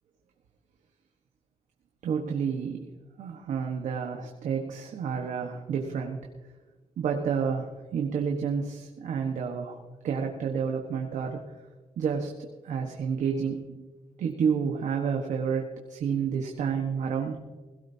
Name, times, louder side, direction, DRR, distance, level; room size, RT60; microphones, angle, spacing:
voice 1, 2.0-2.8 3.2-6.2 7.0-9.8 10.0-11.4 12.0-13.9 14.2-17.4, right 6 dB, 80° right, 2 dB, 1.3 m, -30 dB
17.0 x 16.5 x 2.8 m, 1.3 s
wide cardioid pair, 165°, 13 cm